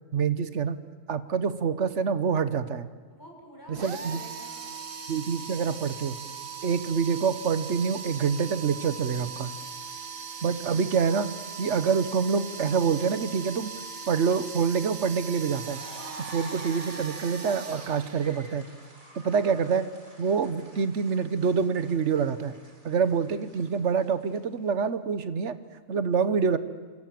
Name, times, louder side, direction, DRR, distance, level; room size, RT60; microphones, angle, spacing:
voice 1, 0.1-0.8 1.1-2.9 3.7-4.2 5.1-6.2 6.6-9.5 10.4-11.3 11.6-13.7 14.1-15.8 16.3-18.6 19.1-19.9 20.2-22.5 22.8-25.6 25.9-26.6, right 6 dB, 65° right, 13 dB, 1.4 m, -26 dB
voice 2, 3.1-4.8 9.7-10.1 23.0-23.1 23.4-23.9, equal, 15° left, 0 dB, 6.9 m, -50 dB
sound 1, 3.7-18.6, right 6 dB, 85° right, 1.9 m, -40 dB
sound 2, 15.3-24.6, right 1 dB, 35° right, 3.7 m, -49 dB
27.0 x 27.0 x 7.7 m, 1.4 s
omnidirectional pair, 1.3 m